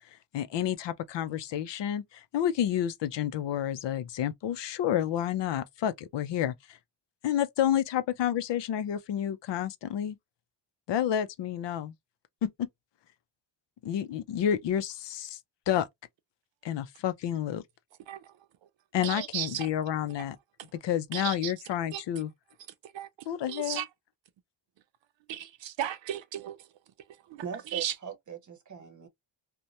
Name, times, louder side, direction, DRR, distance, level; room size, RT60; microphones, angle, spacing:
voice 1, 0.3-6.8 7.2-10.2 10.9-11.9 12.4-12.7 13.8-15.4 15.7-15.9 16.6-17.6 18.9-20.4 20.8-22.3 23.3-23.8, left 10 dB, 65° left, 0.6 m, -30 dB
voice 2, 19.0-19.7 21.1-21.5 21.9-22.0 22.8-23.9 25.3-26.7 27.3-27.9, right 11 dB, 70° right, 0.6 m, -36 dB
voice 3, 27.4-29.1, right 7 dB, 40° right, 0.8 m, -40 dB
2.9 x 2.2 x 2.5 m
cardioid pair, 110°, 47 cm